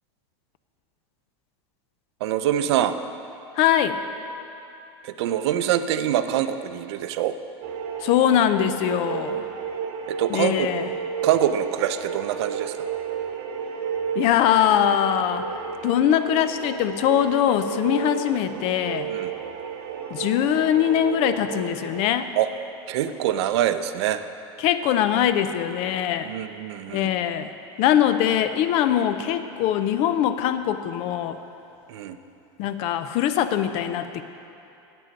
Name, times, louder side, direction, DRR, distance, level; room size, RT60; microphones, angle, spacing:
voice 1, 2.2-3.0 5.0-7.4 10.1-10.7 11.2-12.9 19.1-19.3 22.3-22.5 22.9-24.2 26.2-27.1 31.9-32.2, right 11 dB, 75° right, 11 dB, 0.5 m, -24 dB
voice 2, 3.6-4.0 8.0-9.4 10.3-10.9 14.2-15.5 15.8-19.1 20.1-22.3 24.6-26.3 26.9-27.5 27.8-31.4 32.6-34.2, left 10 dB, 45° left, 11 dB, 0.5 m, -22 dB
sound 1, 7.6-22.1, right 7 dB, 50° right, 1.0 m, -32 dB
9.1 x 8.7 x 5.2 m, 2.8 s
supercardioid pair, 150°, 14 cm